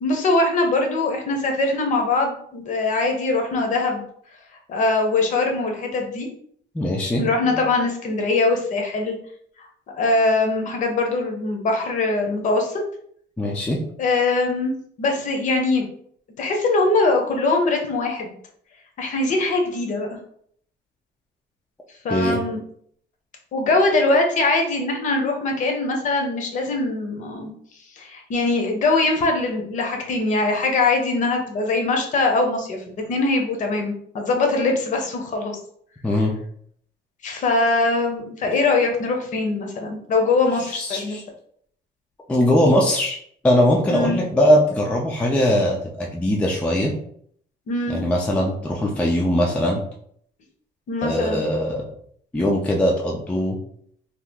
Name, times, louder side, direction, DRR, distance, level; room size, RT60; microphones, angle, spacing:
voice 1, 0.0-4.0 4.7-6.3 7.2-9.2 9.6-9.7 10.0-12.7 14.0-15.9 16.4-18.4 19.0-20.2 22.0-22.6 23.5-27.5 28.0-35.6 36.1-36.2 37.2-41.2 43.9-44.2 47.7-48.0 50.9-51.4, left 3 dB, 45° left, 3 dB, 0.6 m, -22 dB
voice 2, 6.7-7.6 13.4-13.8 22.1-22.4 36.0-36.3 40.7-41.2 42.3-43.2 43.4-46.9 47.9-49.8 51.0-51.8 52.3-53.6, equal, 5° left, -1 dB, 0.3 m, -20 dB
2.8 x 2.3 x 3.4 m, 0.64 s
cardioid pair, 170°, 18 cm